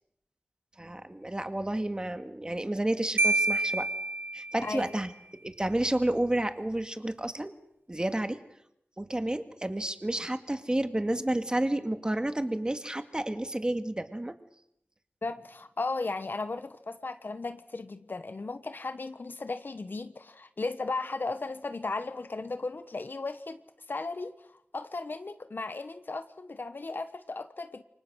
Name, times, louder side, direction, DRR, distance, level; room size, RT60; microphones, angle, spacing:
voice 1, 0.8-3.9 4.3-5.1 5.4-7.5 7.9-8.4 9.0-14.3, right 1 dB, 20° right, 9 dB, 2.0 m, -30 dB
Marimba xylophone, 3.2-4.9, right 2 dB, 70° right, 1.1 m, -28 dB
voice 2, 4.6-5.0 15.2-23.6 23.9-27.8, left 3 dB, 60° left, 10 dB, 1.2 m, -36 dB
28.5 x 24.5 x 6.4 m, 0.75 s
wide cardioid pair, 80°, 4 cm